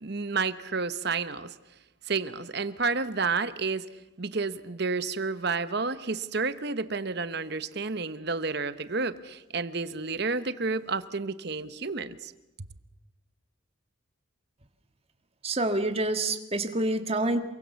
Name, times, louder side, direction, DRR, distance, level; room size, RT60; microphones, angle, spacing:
voice 1, 0.0-1.5 2.1-3.9 4.2-12.3, right 4 dB, 50° right, 13 dB, 1.0 m, -30 dB
voice 2, 15.4-17.4, right 2 dB, 30° right, 7 dB, 1.7 m, -27 dB
28.0 x 23.0 x 7.0 m, 0.95 s
head